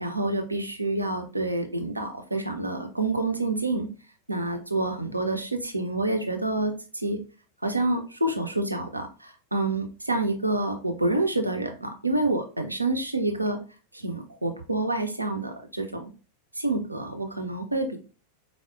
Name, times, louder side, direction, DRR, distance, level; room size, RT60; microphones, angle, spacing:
voice 1, 0.0-3.9 4.3-7.2 7.6-13.6 13.9-16.1 16.6-18.0, right 2 dB, 85° right, 5 dB, 0.5 m, -28 dB
4.5 x 2.0 x 2.4 m, 0.35 s
figure-of-eight pair, 90°, 0 cm